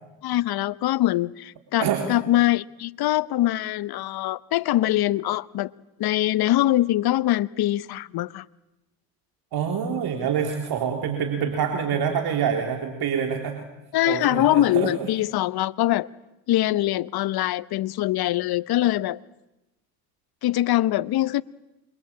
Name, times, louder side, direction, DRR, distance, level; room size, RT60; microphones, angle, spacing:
voice 1, 0.2-5.7 6.0-8.5 13.9-16.1 16.5-19.2 20.4-21.4, left 15 dB, 65° left, 1.1 m, -23 dB
voice 2, 9.5-13.6 14.0-14.9, right 7 dB, 65° right, 3.9 m, -26 dB
28.0 x 24.5 x 8.8 m
supercardioid pair, 70°, 41 cm